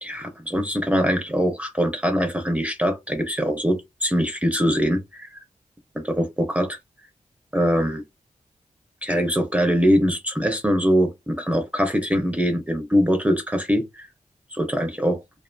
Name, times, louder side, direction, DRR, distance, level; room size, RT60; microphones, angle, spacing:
voice 1, 0.0-5.3 5.9-6.8 7.5-8.0 9.0-14.1 14.5-15.2, equal, 10° right, 0.4 m, -22 dB
2.5 x 2.5 x 2.2 m
wide cardioid pair, 120°, 13 cm